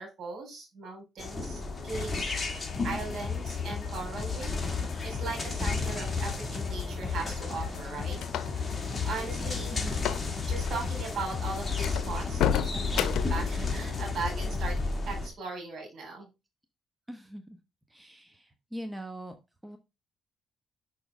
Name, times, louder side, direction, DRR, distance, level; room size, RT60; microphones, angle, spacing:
voice 1, 0.0-2.4 2.8-4.6 5.0-8.7 9.0-9.8 10.5-14.8 15.0-16.3, right 4 dB, 60° right, 2 dB, 4.2 m, -38 dB
sound 1, 1.2-15.3, left 3 dB, 25° left, 1.9 m, -34 dB
sound 2, 2.7-14.9, left 7 dB, 60° left, 1.8 m, -37 dB
sound 3, 7.4-8.7 9.9-10.3 10.5-10.7 11.3-11.4 11.8-13.5, left 10 dB, 80° left, 0.7 m, -30 dB
voice 2, 9.7-10.3 17.1-17.6 17.9-19.4 19.6-19.8, equal, 10° right, 6 dB, 1.0 m, -42 dB
6.2 x 5.9 x 3.6 m, 0.25 s
cardioid pair, 90°, 0 cm